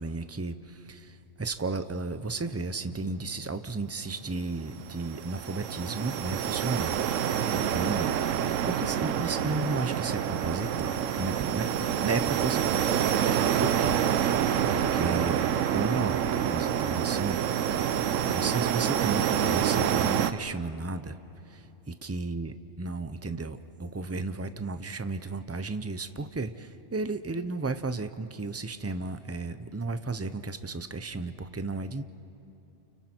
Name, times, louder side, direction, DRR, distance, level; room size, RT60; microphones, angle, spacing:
voice 1, 0.0-8.1 8.6-12.9 13.6-15.4 15.7-17.4 17.7-17.8 18.2-21.2 21.5-32.0, right 3 dB, 20° right, 11 dB, 0.5 m, -34 dB
sound 1, 4.6-20.3, right 9 dB, 85° right, 1.1 m, -27 dB
30.0 x 29.5 x 4.5 m, 2.9 s
omnidirectional pair, 1.3 m